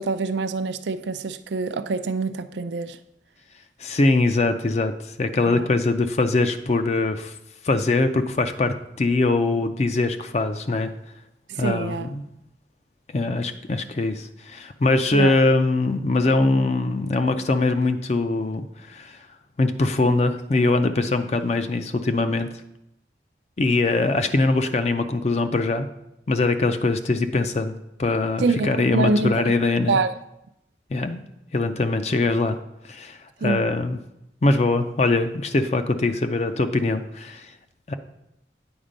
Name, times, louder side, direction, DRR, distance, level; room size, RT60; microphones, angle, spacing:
voice 1, 0.0-3.0 5.5-5.7 11.5-12.1 15.1-15.3 28.4-29.3 29.9-30.1 33.4-33.7, right 3 dB, 85° right, 12 dB, 0.5 m, -25 dB
voice 2, 3.8-4.9 5.2-7.3 7.6-10.9 11.6-12.2 13.1-19.2 19.6-22.5 23.6-25.9 26.3-30.0 30.9-31.2 31.5-32.6 32.9-34.0 34.4-37.5 37.9-38.0, left 2 dB, 40° left, 9 dB, 0.4 m, -22 dB
8.8 x 4.3 x 5.1 m, 0.83 s
head